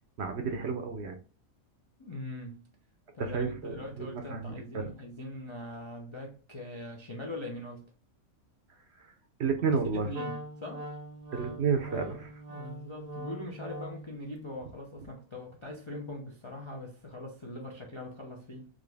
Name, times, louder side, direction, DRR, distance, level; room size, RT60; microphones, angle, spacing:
voice 1, 0.2-1.2 3.2-4.9 9.0-9.1 9.4-10.1 11.3-12.4, right 5 dB, 60° right, 0.8 m, -31 dB
voice 2, 2.0-2.7 3.1-7.9 9.9-10.9 12.5-18.7, left 1 dB, 40° left, 0.4 m, -42 dB
Wind instrument woodwind instrument, 10.1-14.2, right 1 dB, 85° right, 0.3 m, -42 dB
3.9 x 3.0 x 3.4 m
omnidirectional pair, 1.5 m